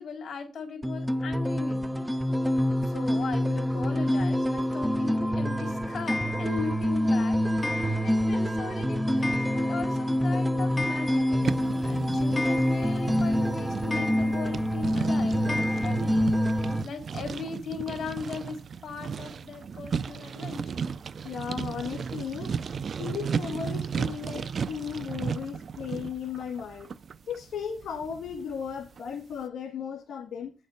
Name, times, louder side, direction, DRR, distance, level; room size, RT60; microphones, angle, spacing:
voice 1, 0.0-2.1 2.5-2.6 2.9-20.6 30.1-30.2, left 4 dB, 55° left, 3.4 m, -38 dB
sound 1, 0.8-16.8, equal, 10° right, 0.8 m, -26 dB
Clock, 6.1-6.8 7.6-8.4 8.7-8.8 9.2-10.0 10.2-10.3 10.6-11.5 11.9-12.0 12.4-13.2 13.9-14.6 15.5-16.0, left 2 dB, 25° left, 0.6 m, -34 dB
sound 2, 11.4-29.1, right 6 dB, 55° right, 0.4 m, -35 dB
voice 2, 21.2-22.6 23.0-26.9 27.3-30.5, left 7 dB, 75° left, 1.6 m, -36 dB
9.0 x 6.5 x 5.6 m
cardioid pair, 85°, 0 cm